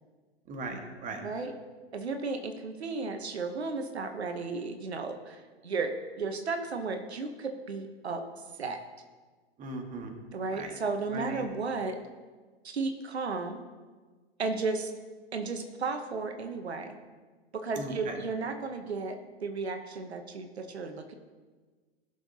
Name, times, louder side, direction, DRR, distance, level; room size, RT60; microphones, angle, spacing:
voice 1, 0.5-1.2 9.6-10.1 10.5-10.7 11.1-11.5 17.8-18.2, right 2 dB, 25° right, 3 dB, 1.6 m, -38 dB
voice 2, 1.2-1.5 1.9-8.2 8.6-8.8 10.3-12.0 12.6-13.6 14.4-14.9 15.3-17.0 17.5-21.1, right 4 dB, 85° right, 6 dB, 0.9 m, -34 dB
16.0 x 6.5 x 2.8 m, 1.4 s
hypercardioid pair, 110°, 32 cm